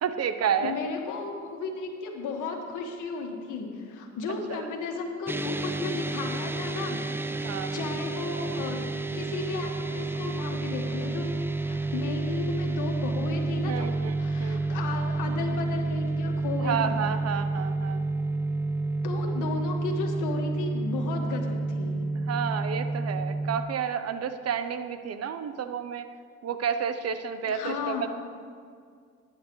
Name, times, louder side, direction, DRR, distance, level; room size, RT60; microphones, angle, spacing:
voice 1, 0.0-0.8 4.5-4.7 7.3-7.8 13.6-14.8 16.6-18.1 22.3-26.1 26.4-28.1, right 7 dB, 55° right, 10 dB, 0.8 m, -31 dB
voice 2, 0.6-8.8 9.1-13.9 14.2-17.1 19.0-22.0 27.4-28.1, left 4 dB, 85° left, 2 dB, 1.7 m, -34 dB
sound 1, 5.3-23.6, right 3 dB, 10° right, 0.5 m, -30 dB
18.0 x 10.0 x 3.1 m, 2.2 s
cardioid pair, 90°, 30 cm